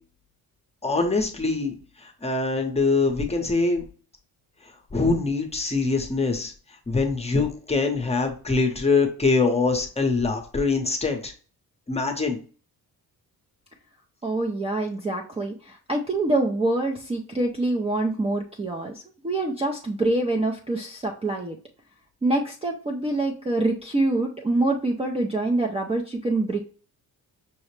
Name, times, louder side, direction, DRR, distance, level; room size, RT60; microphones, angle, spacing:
voice 1, 0.8-1.7 2.2-3.8 4.9-6.5 6.9-11.3 11.9-12.4, left 3 dB, 15° left, 3 dB, 0.7 m, -23 dB
voice 2, 14.2-21.6 22.2-26.6, right 2 dB, 15° right, 1 dB, 0.4 m, -25 dB
5.7 x 2.1 x 3.1 m, 0.39 s
cardioid pair, 130°, 38 cm